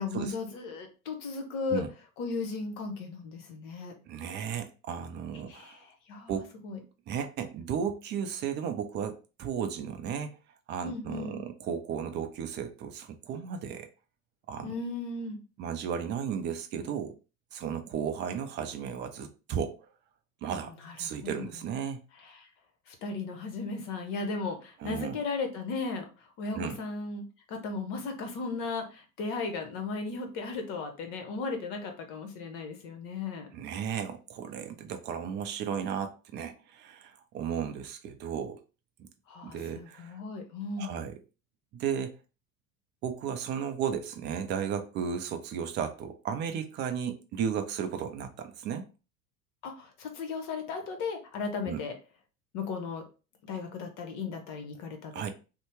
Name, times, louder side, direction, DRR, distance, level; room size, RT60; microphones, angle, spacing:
voice 1, 0.0-1.8 2.2-3.9 5.5-6.8 10.8-11.4 14.6-15.4 20.8-21.5 22.3-22.5 22.9-26.1 26.4-33.5 39.3-41.0 49.6-51.9 52.5-53.0 53.4-55.3, left 4 dB, 45° left, 0.9 m, -36 dB
voice 2, 4.1-5.8 6.3-6.5 7.1-10.3 10.7-13.9 14.5-14.7 15.6-17.2 17.5-19.8 20.4-20.7 21.0-22.0 24.8-25.2 26.5-26.8 33.5-38.6 39.0-39.1 39.4-40.1 40.8-41.2 41.7-42.2 43.0-48.9 51.7-51.8 55.1-55.3, right 7 dB, 25° right, 0.4 m, -34 dB
2.7 x 2.1 x 3.2 m
figure-of-eight pair, 75°, 46 cm